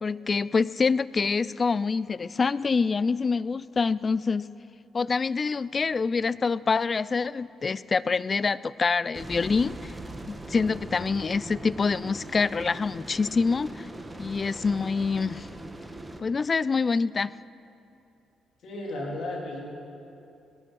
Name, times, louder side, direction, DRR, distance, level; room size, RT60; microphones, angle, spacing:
voice 1, 0.0-4.5 4.9-9.9 10.3-13.9 14.2-15.5 16.2-17.3, left 4 dB, 35° left, 19 dB, 0.3 m, -26 dB
sound 1, 9.1-16.2, right 1 dB, 10° right, 1.2 m, -40 dB
voice 2, 18.6-19.6, left 1 dB, 65° left, -1 dB, 3.5 m, -34 dB
18.0 x 11.0 x 6.3 m, 2.7 s
cardioid pair, 90°, 0 cm